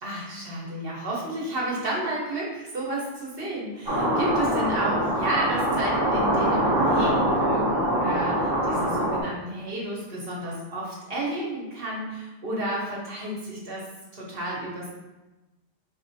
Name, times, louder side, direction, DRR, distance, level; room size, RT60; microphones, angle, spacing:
voice 1, 0.0-13.8 14.1-14.9, right 1 dB, 50° right, -5 dB, 1.2 m, -31 dB
sound 1, 3.9-9.2, right 1 dB, 20° right, 0.7 m, -24 dB
4.1 x 2.9 x 2.7 m, 1.1 s
omnidirectional pair, 1.3 m